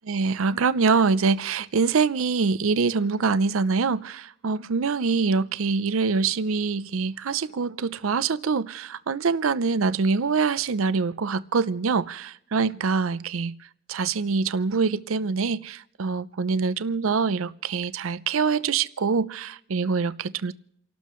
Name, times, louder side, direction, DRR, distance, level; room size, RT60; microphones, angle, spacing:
voice 1, 0.1-13.5 13.9-20.5, right 5 dB, 75° right, 0.6 m, -24 dB
29.5 x 12.5 x 3.1 m
head